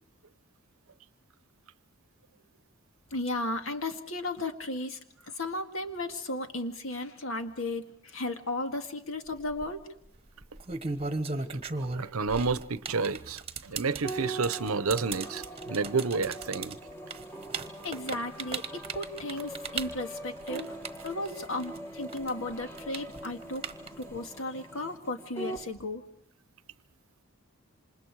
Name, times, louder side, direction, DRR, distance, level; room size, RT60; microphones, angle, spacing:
voice 1, 3.1-5.0 5.4-9.8 17.8-20.7 21.0-23.7 24.0-26.0, left 2 dB, 70° left, 2.0 m, -35 dB
sound 1, 9.3-9.7 10.4-21.8 22.1-24.2, right 4 dB, 30° right, 1.2 m, -36 dB
voice 2, 12.0-16.8, right 4 dB, 80° right, 0.8 m, -30 dB
sound 2, 14.0-25.7, right 1 dB, 10° left, 1.4 m, -42 dB
28.0 x 26.5 x 4.8 m
head